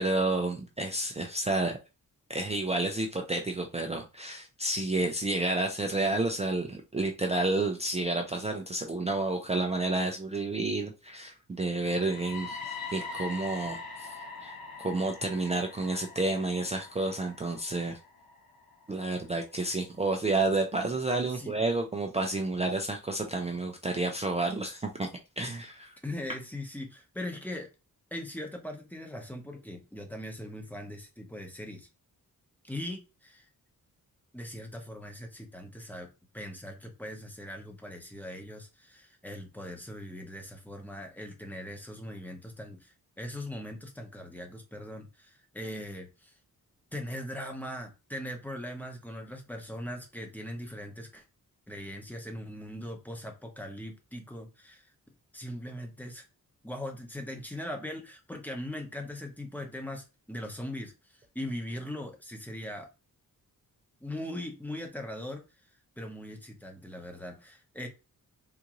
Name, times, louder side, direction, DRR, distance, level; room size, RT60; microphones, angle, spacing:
voice 1, 0.0-1.8 2.3-14.2 14.4-18.0 18.9-25.1 25.4-25.9, right 2 dB, 20° right, 2 dB, 0.3 m, -30 dB
sound 1, 11.8-19.7, left 4 dB, 85° left, 0.9 m, -43 dB
voice 2, 26.0-27.7 28.1-31.9 32.6-33.5 34.3-36.1 36.3-46.3 46.9-51.2 51.7-54.8 55.3-56.2 56.6-60.9 61.3-62.9 64.0-65.4 66.0-67.9, left 1 dB, 5° left, 2 dB, 0.7 m, -40 dB
3.6 x 2.5 x 2.9 m, 0.28 s
wide cardioid pair, 165°, 36 cm